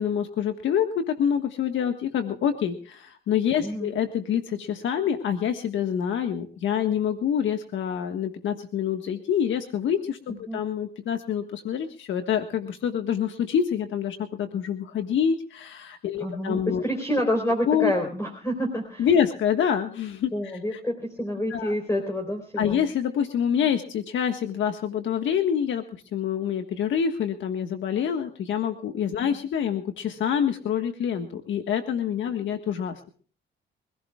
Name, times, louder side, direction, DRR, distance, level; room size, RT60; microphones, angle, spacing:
voice 1, 0.0-16.8 17.7-17.9 19.0-20.8 21.5-21.7 22.6-25.8 26.1-32.9, left 8 dB, 75° left, 6 dB, 1.6 m, -26 dB
voice 2, 3.6-3.9 10.5-10.6 16.2-19.1 20.3-22.8 29.2-29.4, equal, 15° left, 3 dB, 4.0 m, -28 dB
25.0 x 16.5 x 2.4 m, 0.42 s
cardioid pair, 90°, 20 cm